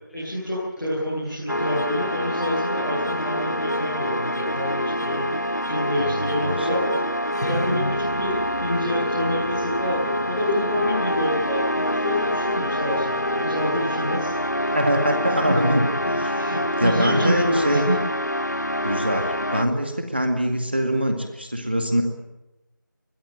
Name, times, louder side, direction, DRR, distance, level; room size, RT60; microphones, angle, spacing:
voice 1, 0.1-6.8 7.4-14.8 15.4-15.5 16.0-17.9, left 1 dB, ahead, -26 dB, 2.5 m, -28 dB
sound 1, 1.5-19.6, equal, 55° left, 1.4 m, -26 dB
voice 2, 6.4-7.0 14.7-16.4 16.8-17.8 18.8-22.0, equal, 30° right, 4 dB, 2.1 m, -23 dB
26.5 x 22.0 x 9.1 m, 0.97 s
figure-of-eight pair, 180°, 11 cm